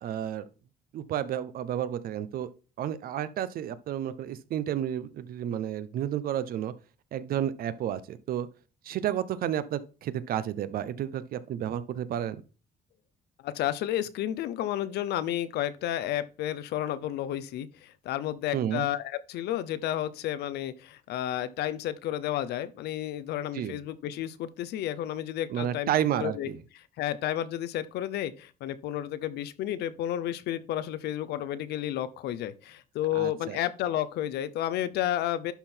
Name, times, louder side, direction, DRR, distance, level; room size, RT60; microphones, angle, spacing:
voice 1, 0.0-0.5 0.9-2.5 2.8-6.7 7.1-8.5 8.8-12.4 18.5-18.9 23.5-23.8 25.5-26.6 33.1-33.6, right 10 dB, 60° right, 0.7 m, -31 dB
voice 2, 13.4-25.9 26.2-26.5 27.0-35.5, left 12 dB, 75° left, 0.7 m, -31 dB
11.5 x 3.8 x 4.5 m
cardioid pair, 110°, 17 cm